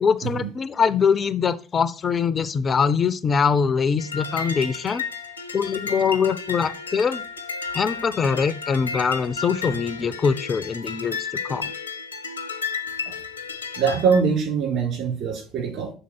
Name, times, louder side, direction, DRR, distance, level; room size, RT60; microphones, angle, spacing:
voice 1, 0.0-5.0 5.5-7.3 7.7-11.7, left 6 dB, 30° left, 16 dB, 0.3 m, -23 dB
sound 1, 4.0-14.2, left 5 dB, 80° left, 0.6 m, -33 dB
voice 2, 13.8-15.9, right 6 dB, 50° right, -1 dB, 3.3 m, -23 dB
6.3 x 3.7 x 5.5 m, 0.38 s
figure-of-eight pair, 60°, 0 cm